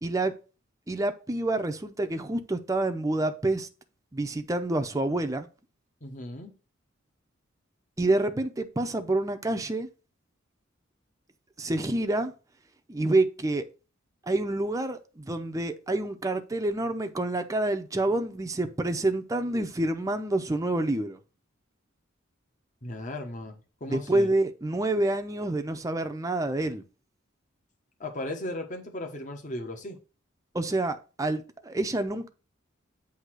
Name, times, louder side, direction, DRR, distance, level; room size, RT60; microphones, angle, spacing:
voice 1, 0.0-0.3 0.9-3.7 4.1-5.5 8.0-9.9 11.6-12.3 12.9-13.7 14.3-21.2 23.9-26.8 30.5-32.3, right 2 dB, 15° right, 0.6 m, -27 dB
voice 2, 6.0-6.5 22.8-24.3 28.0-30.0, left 1 dB, 40° left, 1.3 m, -36 dB
8.2 x 2.9 x 6.1 m
head